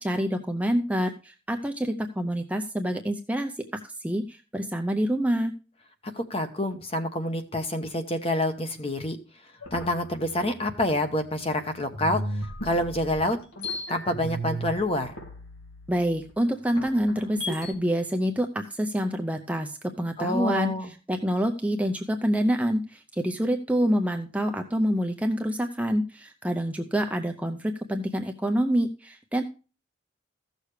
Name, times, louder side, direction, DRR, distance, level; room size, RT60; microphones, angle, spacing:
voice 1, 0.0-3.5 3.8-5.5 15.9-20.7 21.1-29.4, equal, 5° right, 4 dB, 0.6 m, -27 dB
voice 2, 6.1-9.2 9.7-13.4 13.9-15.2 20.2-20.9, left 1 dB, 30° left, 7 dB, 1.0 m, -27 dB
sound 1, 9.6-11.5 11.9-17.7, equal, 90° left, 2.6 m, -36 dB
15.0 x 6.5 x 3.2 m, 0.34 s
head